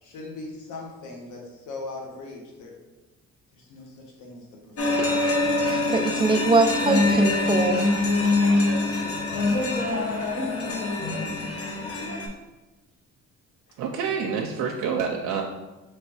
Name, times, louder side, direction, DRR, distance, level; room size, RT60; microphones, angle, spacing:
voice 1, 0.0-2.7 3.5-5.1 11.1-11.4 13.7-13.8, left 2 dB, 85° left, 0 dB, 1.1 m, -40 dB
sound 1, 4.8-12.3, left 2 dB, 50° left, 0.8 m, -24 dB
voice 2, 5.0-5.4 5.6-7.9, right 3 dB, 20° right, 7 dB, 0.4 m, -23 dB
voice 3, 13.8-15.4, right 6 dB, 80° right, 1 dB, 0.5 m, -27 dB
3.2 x 3.1 x 4.6 m, 1.1 s
cardioid pair, 90°, 30 cm